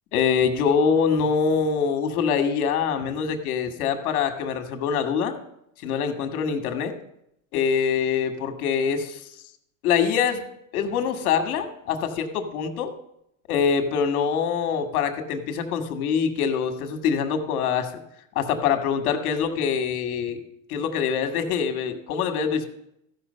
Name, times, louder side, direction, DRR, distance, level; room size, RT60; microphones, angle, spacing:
voice 1, 0.1-5.3 5.8-6.9 7.5-9.2 9.8-10.5 10.7-12.9 13.5-17.9 18.3-20.4 20.7-22.7, left 6 dB, 75° left, 6 dB, 1.6 m, -24 dB
14.5 x 5.6 x 5.5 m, 0.78 s
supercardioid pair, 120°, 44 cm